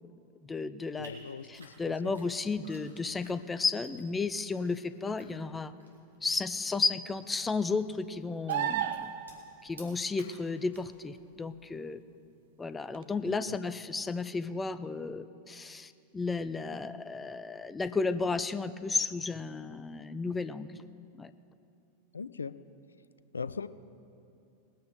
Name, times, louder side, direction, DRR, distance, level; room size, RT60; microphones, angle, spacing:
voice 1, 0.4-1.1 1.5-5.7 6.2-9.1 9.6-12.0 12.6-20.8 21.2-21.3, left 4 dB, 15° left, 13 dB, 0.5 m, -33 dB
voice 2, 1.0-2.2 13.2-13.6 22.1-22.5 23.3-23.7, left 5 dB, 75° left, 15 dB, 0.4 m, -40 dB
sound 1, 1.0-11.8, equal, 80° right, 2.3 m, -58 dB
sound 2, 8.5-9.4 12.9-13.0, right 10 dB, 55° right, 0.6 m, -31 dB
19.5 x 9.2 x 5.2 m, 2.7 s
figure-of-eight pair, 90°, 0 cm